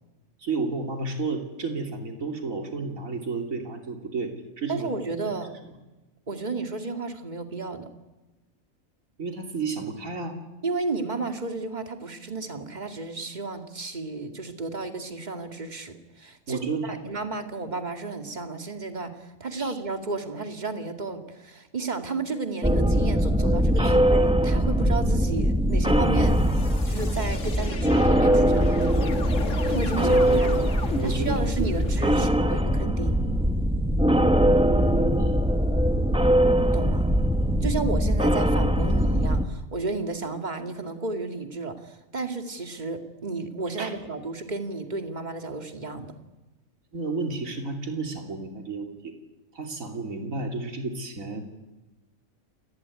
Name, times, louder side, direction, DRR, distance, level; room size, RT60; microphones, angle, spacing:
voice 1, 0.4-4.9 9.2-10.4 16.5-17.0 19.6-19.8 23.8-23.9 30.0-30.7 30.9-31.5 31.8-32.5 35.2-35.4 43.8-43.9 46.9-49.1 49.5-51.4, right 3 dB, 75° right, 4 dB, 3.3 m, -32 dB
voice 2, 4.7-5.5 6.3-7.9 10.6-26.4 26.9-29.1 29.7-30.7 31.0-33.2 36.7-37.0 37.6-46.1, right 3 dB, 30° right, 6 dB, 2.4 m, -33 dB
sound 1, 22.6-39.4, equal, 5° right, 1.1 m, -22 dB
sound 2, 25.1-32.1, left 4 dB, 65° left, 2.0 m, -36 dB
28.0 x 19.5 x 9.8 m, 1.1 s
omnidirectional pair, 1.4 m